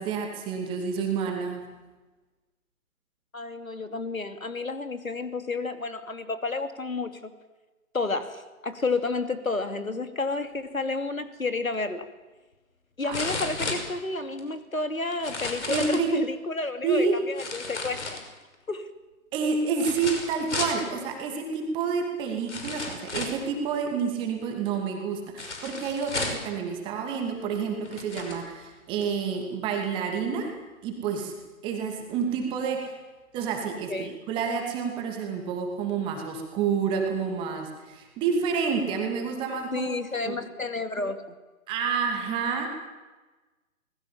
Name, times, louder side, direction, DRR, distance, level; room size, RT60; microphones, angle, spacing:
voice 1, 0.0-1.6 13.1-13.2 15.7-16.1 16.8-17.2 19.3-30.5 30.8-31.3 31.6-33.0 33.3-39.9 40.3-40.4 41.7-42.7, right 5 dB, 10° right, 3 dB, 2.6 m, -29 dB
voice 2, 3.3-7.3 7.9-12.1 13.0-18.2 18.7-18.9 33.9-34.1 39.7-41.3, left 3 dB, 70° left, 9 dB, 2.8 m, -31 dB
sound 1, 11.7-11.8 13.1-14.4 15.1-16.1 17.4-18.5 19.8-20.8 21.8-21.9 22.5-23.5 25.4-26.5 27.3-27.4 27.8-28.4 29.0-29.1, left 3 dB, 55° left, 5.8 m, -33 dB
27.0 x 20.5 x 7.3 m, 1.2 s
figure-of-eight pair, 145°, 42 cm